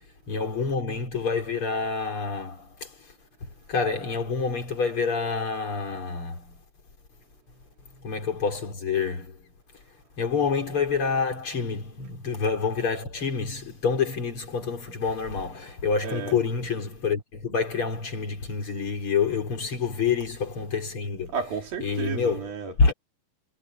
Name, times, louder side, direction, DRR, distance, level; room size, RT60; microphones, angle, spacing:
voice 1, 0.3-2.9 3.7-6.5 8.0-9.3 10.2-21.4 21.8-22.5 22.8-22.9, left 5 dB, 35° left, 4.4 m, -27 dB
voice 2, 16.0-16.4 21.3-22.9, right 6 dB, 80° right, 5.5 m, -32 dB
omnidirectional pair, 4.1 m